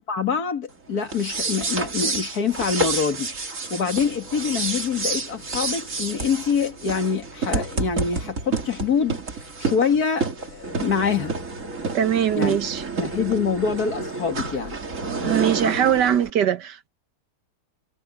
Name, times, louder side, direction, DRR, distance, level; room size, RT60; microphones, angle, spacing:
voice 1, 0.1-3.3 3.7-9.2 9.6-11.3 12.3-12.6 13.0-14.8, left 6 dB, 65° left, 2.4 m, -25 dB
sound 1, 1.0-16.3, right 3 dB, 50° right, 2.7 m, -29 dB
voice 2, 11.9-12.8 15.3-16.9, right 9 dB, 90° right, 1.8 m, -21 dB
omnidirectional pair, 1.8 m